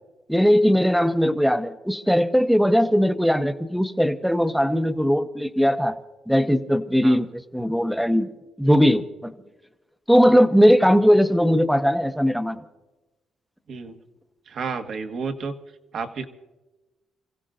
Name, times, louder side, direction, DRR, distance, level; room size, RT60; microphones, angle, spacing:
voice 1, 0.3-5.9 6.3-8.3 8.6-9.3 10.1-12.6, equal, ahead, 9 dB, 1.0 m, -19 dB
voice 2, 14.5-15.5 15.9-16.3, right 5 dB, 60° right, 6 dB, 1.5 m, -31 dB
29.0 x 16.0 x 2.5 m, 1.1 s
cardioid pair, 90°, 0 cm